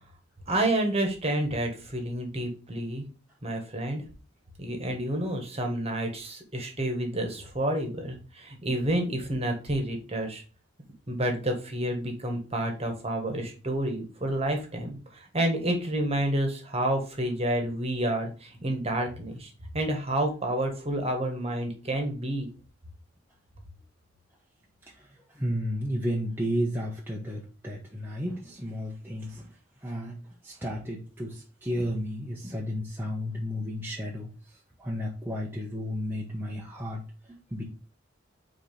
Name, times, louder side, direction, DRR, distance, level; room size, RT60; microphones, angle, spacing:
voice 1, 0.5-3.0 3.4-4.0 4.6-10.4 11.1-22.5, right 1 dB, 30° right, 3 dB, 1.6 m, -29 dB
voice 2, 24.8-37.6, equal, 10° right, -3 dB, 1.1 m, -33 dB
4.8 x 4.4 x 5.4 m, 0.36 s
head